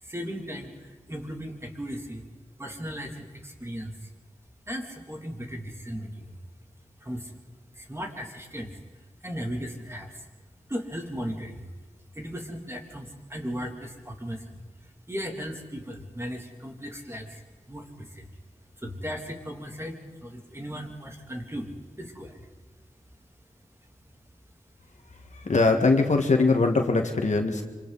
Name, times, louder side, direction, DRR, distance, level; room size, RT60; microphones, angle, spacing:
voice 1, 0.0-2.2 2.6-4.1 4.7-6.4 7.0-7.4 7.7-8.8 9.2-10.2 10.7-11.7 12.1-17.4 17.7-18.3 18.8-21.7 22.0-22.5, equal, 20° right, 1 dB, 3.0 m, -37 dB
voice 2, 25.5-27.6, left 3 dB, 65° left, 4 dB, 1.8 m, -21 dB
26.0 x 25.5 x 4.2 m, 1.3 s
wide cardioid pair, 60°, 13 cm